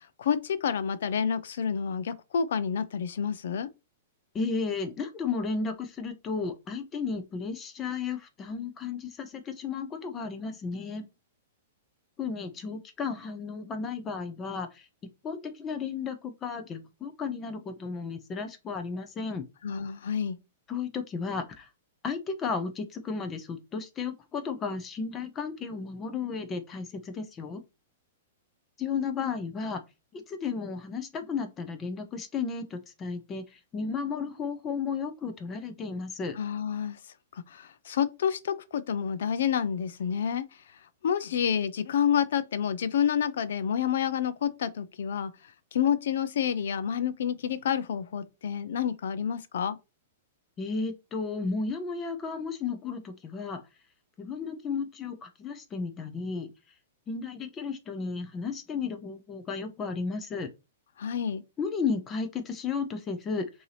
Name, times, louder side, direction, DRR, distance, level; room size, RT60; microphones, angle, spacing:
voice 1, 0.0-3.7 19.6-20.4 36.4-37.0 37.3-40.5 41.0-45.3 45.7-49.8 61.0-61.4, left 8 dB, 75° left, 0.5 m, -29 dB
voice 2, 4.3-11.1 12.2-14.9 15.2-19.4 20.7-21.7 22.0-27.6 28.8-29.8 30.1-36.4 50.6-53.6 54.2-56.5 57.1-60.5 61.6-63.5, left 5 dB, 20° left, 0.6 m, -33 dB
5.3 x 2.8 x 3.3 m
hypercardioid pair, 155°, 0 cm